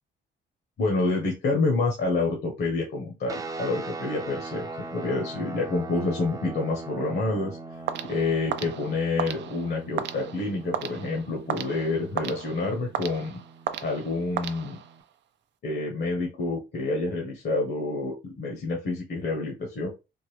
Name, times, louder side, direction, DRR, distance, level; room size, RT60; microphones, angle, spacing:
voice 1, 0.8-4.6 4.9-7.6 8.0-13.4 13.8-14.8 15.6-19.9, left 3 dB, 55° left, 0 dB, 1.0 m, -28 dB
sound 1, 3.3-15.0, right 3 dB, 20° right, 0.6 m, -41 dB
sound 2, 7.9-15.1, right 9 dB, 65° right, 0.5 m, -35 dB
3.6 x 2.1 x 3.2 m, 0.27 s
cardioid pair, 90°, 20 cm